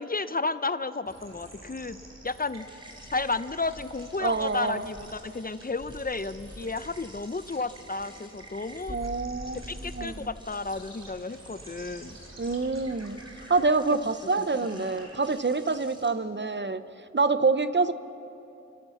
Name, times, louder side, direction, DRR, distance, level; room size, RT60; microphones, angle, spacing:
voice 1, 0.0-2.0 2.2-2.7 3.1-9.0 9.7-12.2 14.4-14.5 14.7-14.9, left 3 dB, 30° left, 13 dB, 0.6 m, -32 dB
sound 1, 1.1-15.6, right 1 dB, 60° right, 3.0 m, -49 dB
sound 2, 2.5-17.0, equal, 15° right, 3.3 m, -55 dB
Insect, 3.0-5.3 5.8-7.2 8.8-10.5, equal, 10° left, 3.1 m, -44 dB
voice 2, 4.2-4.9 8.9-9.6 9.9-10.3 12.4-13.2 13.5-16.8 17.1-17.9, right 3 dB, 40° right, 12 dB, 0.7 m, -26 dB
28.5 x 13.0 x 7.1 m, 2.9 s
wide cardioid pair, 55°, 29 cm